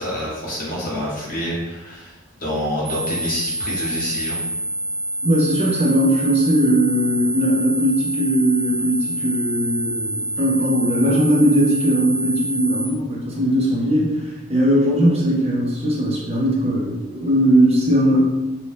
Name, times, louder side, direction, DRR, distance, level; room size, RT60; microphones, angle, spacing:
voice 1, 0.0-4.4, equal, 45° left, -4 dB, 0.8 m, -27 dB
sound 1, 2.8-12.8, right 1 dB, 80° right, 1.1 m, -27 dB
voice 2, 5.2-18.3, equal, 30° right, -3 dB, 0.5 m, -19 dB
2.7 x 2.1 x 3.2 m, 1.1 s
head